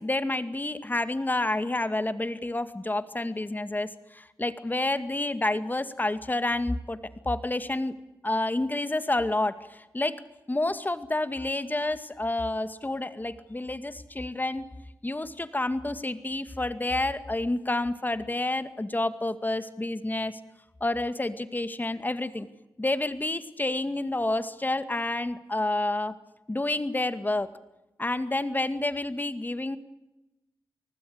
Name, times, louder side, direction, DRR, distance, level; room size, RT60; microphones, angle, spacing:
voice 1, 0.0-7.0 7.2-7.9 8.2-10.2 10.5-14.6 15.0-20.4 20.8-22.5 22.8-26.2 26.5-27.5 28.0-29.8, left 2 dB, 25° left, 11 dB, 2.2 m, -29 dB
29.0 x 19.5 x 8.1 m, 0.97 s
cardioid pair, 45°, 7 cm